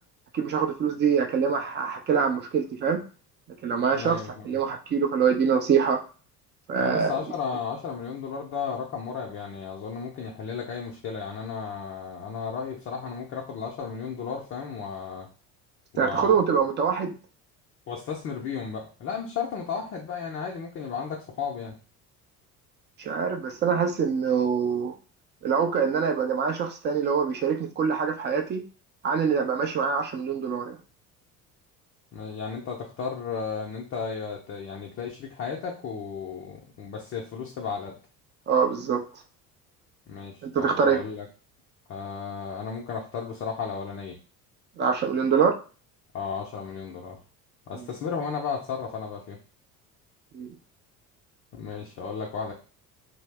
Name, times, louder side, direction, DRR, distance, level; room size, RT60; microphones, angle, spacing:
voice 1, 0.3-3.0 3.6-4.2 4.4-6.0 6.7-7.2 16.0-17.1 23.0-24.9 25.4-28.6 29.0-30.8 38.5-39.0 40.4-41.0 44.8-45.5 47.7-47.9 50.3-50.5, right 6 dB, 25° right, 4 dB, 0.5 m, -24 dB
voice 2, 3.9-4.6 6.8-15.3 15.9-16.4 17.9-21.8 32.1-37.9 40.1-41.3 41.9-44.2 46.1-47.2 47.7-49.4 51.5-52.5, left 6 dB, 30° left, -1 dB, 0.6 m, -34 dB
2.6 x 2.0 x 3.2 m, 0.36 s
figure-of-eight pair, 60°, 47 cm